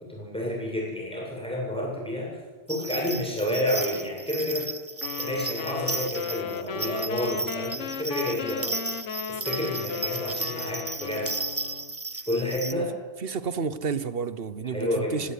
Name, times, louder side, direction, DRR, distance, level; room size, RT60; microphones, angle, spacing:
voice 1, 0.1-2.3 2.7-4.7 5.2-8.8 9.3-11.3 12.3-12.9 14.6-15.3, left 1 dB, 5° left, 7.6 m, -30 dB
sound 1, 2.7-12.7, right 3 dB, 25° right, 0.3 m, -34 dB
sound 2, 5.0-12.0, left 7 dB, 80° left, 1.3 m, -35 dB
voice 2, 13.2-15.3, right 5 dB, 55° right, 1.2 m, -31 dB
18.0 x 17.0 x 9.7 m
omnidirectional pair, 1.2 m